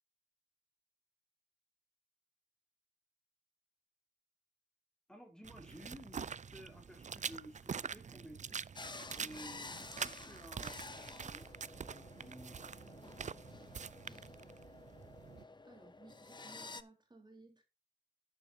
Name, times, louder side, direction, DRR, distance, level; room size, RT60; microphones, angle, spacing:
voice 1, 5.1-8.6 9.1-14.0 14.4-14.5, equal, 5° left, 3.7 m, -55 dB
sound 1, 5.4-15.4, right 6 dB, 45° right, 0.4 m, -45 dB
sound 2, 8.8-16.8, left 3 dB, 25° left, 0.7 m, -51 dB
voice 2, 15.6-17.6, right 2 dB, 25° right, 4.0 m, -59 dB
12.0 x 9.9 x 2.8 m
wide cardioid pair, 115°, 17 cm